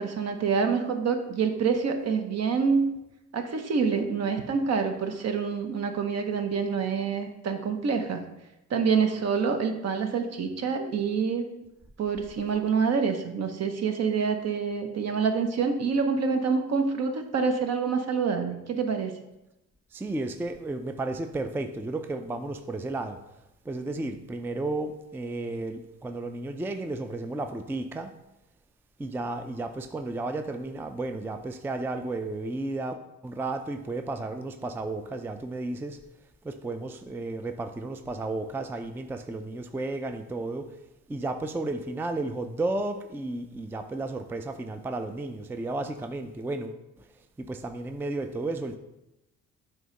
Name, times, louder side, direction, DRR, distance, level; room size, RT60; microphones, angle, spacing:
voice 1, 0.0-2.9 3.3-8.2 8.7-11.5 12.0-19.1, right 5 dB, 55° right, 6 dB, 0.9 m, -27 dB
voice 2, 19.9-23.2 23.7-28.2 29.0-36.0 36.4-40.7 41.1-47.0 47.4-48.8, right 2 dB, 5° right, 7 dB, 0.4 m, -33 dB
7.7 x 2.8 x 5.2 m, 0.92 s
cardioid pair, 90°, 30 cm